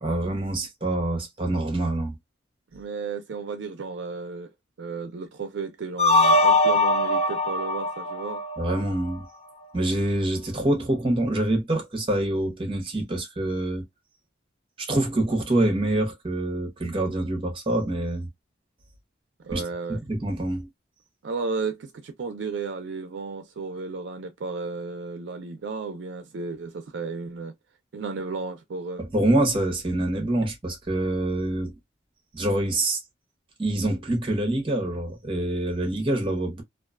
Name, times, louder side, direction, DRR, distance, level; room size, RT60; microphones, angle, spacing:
voice 1, 0.0-2.1 8.6-9.2 9.7-13.8 14.8-18.3 19.5-19.6 19.9-20.7 29.0-31.7 32.3-33.0 33.6-36.6, right 1 dB, 30° right, 0.7 m, -25 dB
voice 2, 2.7-4.5 4.8-8.4 19.4-20.0 21.2-27.5 27.9-29.1, right 4 dB, 75° right, 0.4 m, -33 dB
sound 1, 6.0-9.1, left 2 dB, 35° left, 0.4 m, -21 dB
2.4 x 2.2 x 2.3 m
head